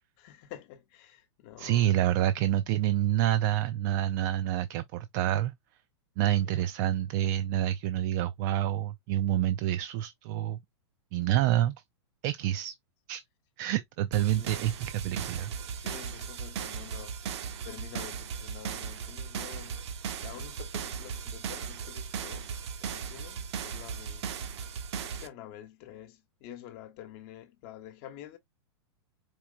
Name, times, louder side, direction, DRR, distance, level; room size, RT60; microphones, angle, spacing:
voice 1, 0.2-2.1 6.4-6.6 14.4-14.6 15.8-17.2 17.6-19.8 20.2-22.5 22.8-24.3 25.0-28.4, left 11 dB, 45° left, 1.0 m, -48 dB
voice 2, 1.6-5.5 6.2-10.6 11.1-11.7 12.2-12.7 13.1-13.2 13.6-15.5, right 12 dB, 40° right, 0.5 m, -27 dB
sound 1, 14.1-25.3, right 7 dB, 65° right, 0.9 m, -37 dB
4.6 x 3.0 x 2.4 m
hypercardioid pair, 135°, 15 cm